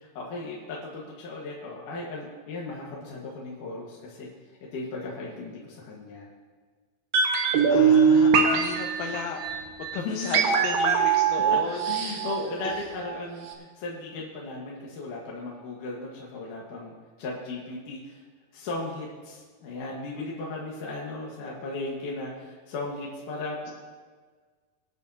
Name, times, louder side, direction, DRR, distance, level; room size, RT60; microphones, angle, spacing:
voice 1, 0.0-4.3 4.6-6.3 10.0-10.5 11.5-11.6 11.8-18.2 18.5-23.7, left 3 dB, 70° left, -3 dB, 2.8 m, -36 dB
sound 1, 7.1-13.2 13.5-13.6, right 6 dB, 75° right, 2.9 m, -22 dB
voice 2, 7.7-9.4 9.8-11.8, left 6 dB, 90° left, 1 dB, 2.6 m, -35 dB
25.0 x 9.4 x 2.8 m, 1.5 s
omnidirectional pair, 4.1 m